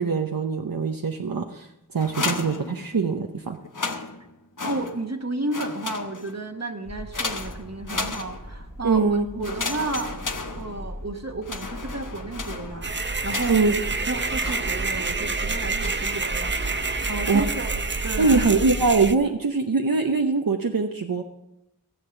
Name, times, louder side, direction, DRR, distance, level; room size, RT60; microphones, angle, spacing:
voice 1, 0.0-3.6 8.8-9.3 13.5-13.8 17.3-17.5 18.2-21.2, right 4 dB, 80° right, 4 dB, 0.8 m, -23 dB
sound 1, 2.0-3.2 3.6-5.2 5.5-6.5 7.1-8.7 9.4-11.1 11.4-13.8 14.4-15.1 15.8-16.2 16.6-17.1, left 3 dB, 65° left, 1.0 m, -34 dB
voice 2, 4.6-10.2 10.5-13.8 14.1-18.5, right 2 dB, 50° right, 3 dB, 1.2 m, -32 dB
sound 2, 6.9-19.1, equal, 10° left, 1.7 m, -40 dB
sound 3, 12.8-19.2, right 3 dB, 35° right, 0.7 m, -28 dB
15.5 x 7.3 x 7.0 m, 0.87 s
wide cardioid pair, 45°, 34 cm